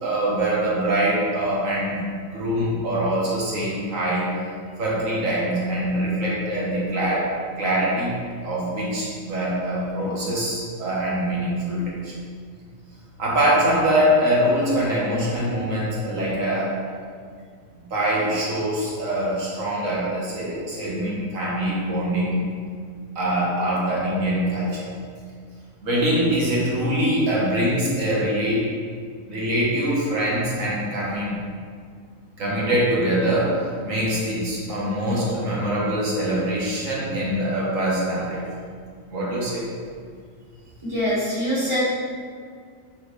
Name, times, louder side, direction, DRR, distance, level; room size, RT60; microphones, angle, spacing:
voice 1, 0.0-4.3 4.8-7.3 7.6-8.1 8.4-12.1 13.2-16.7 17.7-22.3 23.1-24.9 25.8-28.7 29.3-31.3 32.4-33.6 33.8-38.4 39.1-39.7, right 1 dB, 75° right, -6 dB, 1.7 m, -23 dB
voice 2, 40.8-41.9, equal, 20° right, -9 dB, 1.8 m, -23 dB
8.6 x 4.2 x 3.2 m, 2.1 s
omnidirectional pair, 1.4 m